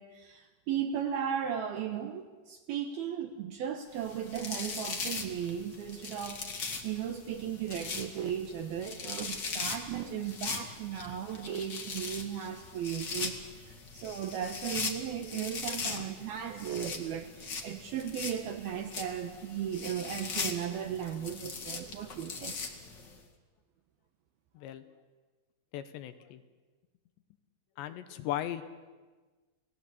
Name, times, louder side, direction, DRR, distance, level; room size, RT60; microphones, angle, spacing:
voice 1, 0.0-6.4 6.8-22.6, right 9 dB, 70° right, 7 dB, 2.4 m, -36 dB
sound 1, 4.0-23.1, left 4 dB, 55° left, 1.2 m, -40 dB
voice 2, 25.7-26.4 27.8-28.6, left 12 dB, 75° left, 10 dB, 2.9 m, -37 dB
29.5 x 19.0 x 8.5 m, 1.3 s
omnidirectional pair, 5.6 m